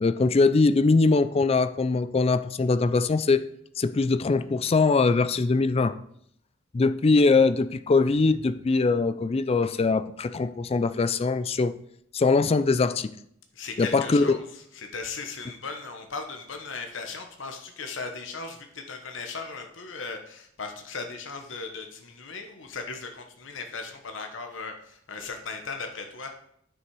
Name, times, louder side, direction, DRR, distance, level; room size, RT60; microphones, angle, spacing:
voice 1, 0.0-3.4 3.8-5.9 6.7-11.7 12.1-13.1 13.8-14.3, left 3 dB, 30° left, 13 dB, 0.4 m, -22 dB
voice 2, 13.5-26.3, left 4 dB, 70° left, 4 dB, 1.0 m, -37 dB
9.9 x 6.2 x 4.7 m, 0.70 s
head